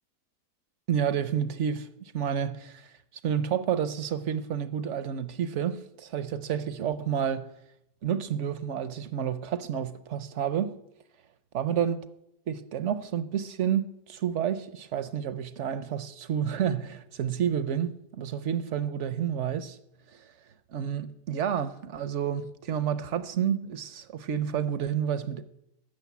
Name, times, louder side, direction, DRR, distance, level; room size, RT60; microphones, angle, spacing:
voice 1, 0.9-1.9 2.1-2.9 3.2-7.5 8.0-10.8 11.5-12.0 12.5-19.8 20.1-20.2 20.7-25.4, right 8 dB, 60° right, 0.8 m, -30 dB
14.0 x 6.6 x 9.3 m
omnidirectional pair, 1.7 m